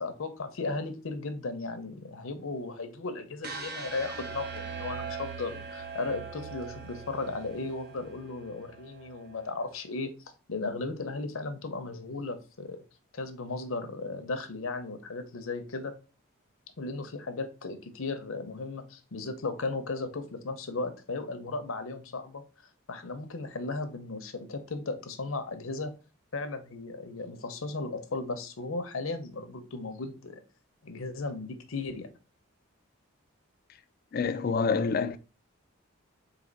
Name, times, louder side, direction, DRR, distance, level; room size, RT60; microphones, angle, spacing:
voice 1, 0.0-10.1 10.5-12.8 13.1-15.9 16.8-22.4 22.9-25.9 26.3-30.4 30.8-32.1, left 3 dB, 75° left, 0.7 m, -36 dB
sound 1, 3.4-9.5, right 5 dB, 45° right, 0.7 m, -41 dB
voice 2, 34.1-35.2, left 5 dB, 45° left, 0.3 m, -27 dB
4.1 x 2.8 x 4.0 m
head